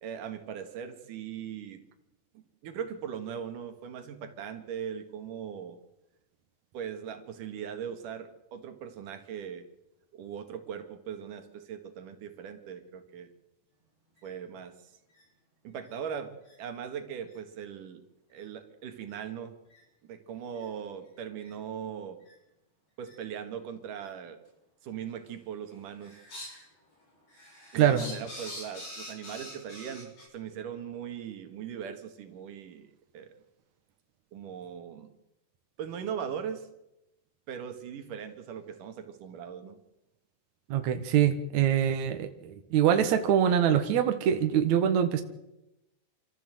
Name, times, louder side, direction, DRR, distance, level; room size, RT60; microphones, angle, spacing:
voice 1, 0.0-1.8 2.3-5.8 6.7-9.6 10.1-13.3 14.2-14.9 15.6-18.0 18.3-19.6 20.0-22.2 23.0-24.4 24.8-26.2 27.7-32.9 33.1-33.3 34.3-35.1 35.8-36.7 37.5-39.8, right 8 dB, 85° right, 7 dB, 3.3 m, -39 dB
sound 1, 14.2-14.3 15.1-15.2 15.9-16.0 16.4-16.5 17.2-17.4 18.4-18.5 19.0-19.2 19.7-19.8 20.6-20.7 21.4-21.5 22.2-22.3 23.0-23.1 24.0-24.1 25.0-25.4 25.7-26.6 27.0-30.3, left 1 dB, 55° left, 8.7 m, -45 dB
voice 2, 40.7-45.2, right 9 dB, 70° right, 6 dB, 2.6 m, -24 dB
26.5 x 14.5 x 7.9 m, 0.94 s
omnidirectional pair, 3.6 m